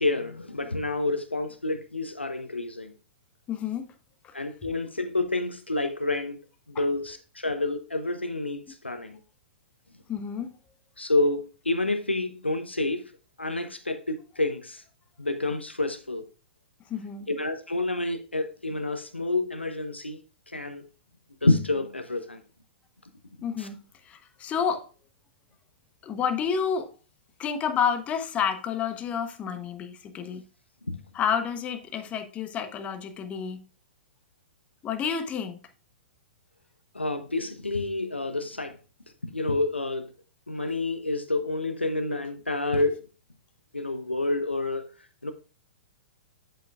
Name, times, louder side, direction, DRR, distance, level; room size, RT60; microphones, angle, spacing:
voice 1, 0.0-2.9 4.3-6.4 6.7-9.2 11.0-13.0 13.4-14.8 15.2-16.2 17.3-20.2 20.5-20.9 21.4-22.4 23.6-23.7 30.9-31.0 36.9-38.8 39.3-40.1 40.5-43.0 43.7-44.9 45.2-45.3, left 2 dB, 90° left, 0.7 m, -28 dB
voice 2, 3.5-3.9 4.2-4.3 6.7-6.8 10.1-10.5 16.9-17.3 23.4-23.8 24.0-24.9 26.0-26.9 27.4-30.4 31.1-33.7 34.8-35.6, left 7 dB, 20° left, 1.0 m, -30 dB
8.0 x 7.9 x 2.4 m
figure-of-eight pair, 110°, 6 cm